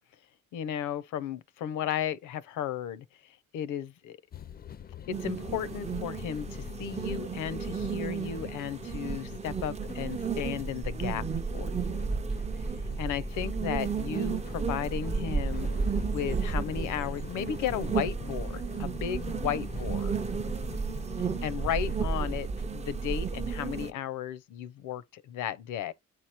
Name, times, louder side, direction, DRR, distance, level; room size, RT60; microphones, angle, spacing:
voice 1, 0.5-3.0 3.5-4.2 5.1-11.3 11.5-12.2 13.0-15.7 16.1-20.2 21.4-25.9, left 10 dB, 85° left, 0.7 m, -34 dB
sound 1, 4.3-22.3, left 7 dB, 30° left, 0.4 m, -44 dB
sound 2, 5.1-23.9, right 5 dB, 20° right, 0.5 m, -33 dB
8.4 x 4.7 x 2.9 m
cardioid pair, 90°, 30 cm